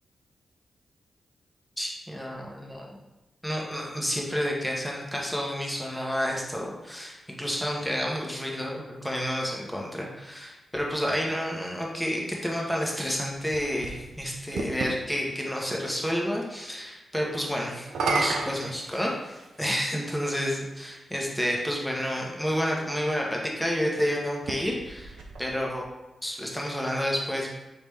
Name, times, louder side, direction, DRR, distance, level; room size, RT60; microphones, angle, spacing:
voice 1, 1.8-3.0 3.4-25.8 26.2-27.5, equal, 5° left, -2 dB, 1.1 m, -30 dB
sound 1, 13.1-15.0 17.8-19.6 20.5-20.6 24.3-25.9, right 3 dB, 85° right, 0.5 m, -32 dB
4.0 x 3.5 x 3.4 m, 1.0 s
cardioid pair, 50°, 0 cm